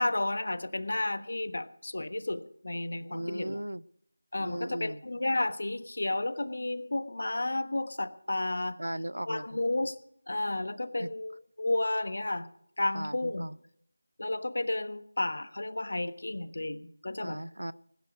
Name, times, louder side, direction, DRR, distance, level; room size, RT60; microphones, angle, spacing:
voice 1, 0.0-3.6 4.3-8.8 9.2-10.0 10.3-12.5 12.8-13.5 14.2-17.4, left 2 dB, 55° left, 12 dB, 1.3 m, -32 dB
voice 2, 3.1-3.8 4.4-5.0 8.8-9.6 11.0-11.1 12.9-13.6 17.2-17.7, right 1 dB, 80° right, 19 dB, 0.6 m, -37 dB
20.5 x 10.5 x 5.1 m, 0.70 s
figure-of-eight pair, 170°, 0 cm